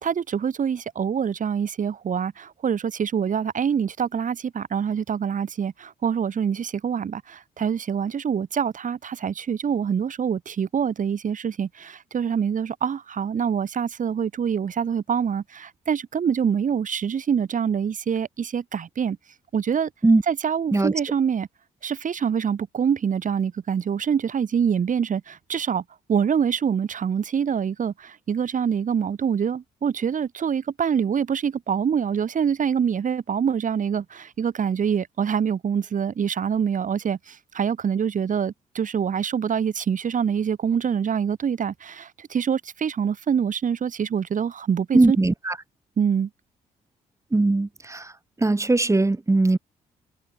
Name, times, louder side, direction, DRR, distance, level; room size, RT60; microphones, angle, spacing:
voice 1, 0.0-19.2 19.5-19.9 20.3-21.5 21.8-25.8 26.1-45.2 46.0-46.3, right 7 dB, 55° right, 3.1 m, -25 dB
voice 2, 44.9-45.6 47.3-48.1 48.4-49.6, right 2 dB, 20° right, 1.8 m, -20 dB
supercardioid pair, 65°, 16 cm